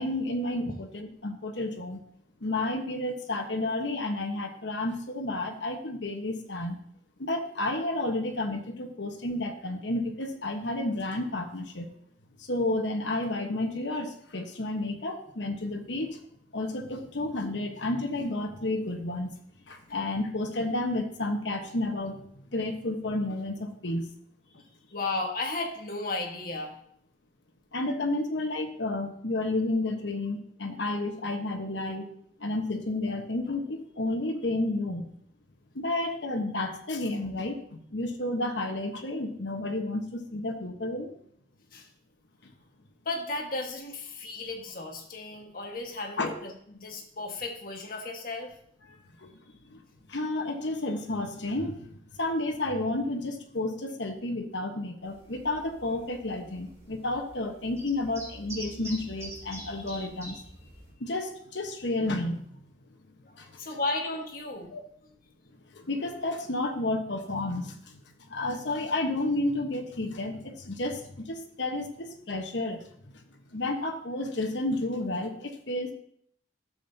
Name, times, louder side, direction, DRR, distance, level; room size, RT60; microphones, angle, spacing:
voice 1, 0.0-2.0 2.4-6.8 7.2-11.9 12.4-16.2 16.5-19.3 19.7-22.2 22.5-24.1 27.7-32.1 32.4-35.1 35.7-41.1 42.4-42.5 46.2-46.3 48.9-49.3 49.6-49.8 50.1-60.7 61.0-62.4 63.4-63.5 64.7-64.8 65.7-68.0 68.3-73.2 73.5-75.9, left 2 dB, 75° left, 4 dB, 1.2 m, -31 dB
voice 2, 24.9-26.7 41.7-41.9 43.0-48.5 63.3-64.7, left 2 dB, 50° left, 2 dB, 1.5 m, -34 dB
sound 1, 55.0-60.9, right 1 dB, 15° right, 4.2 m, -46 dB
12.5 x 7.5 x 2.8 m, 0.65 s
head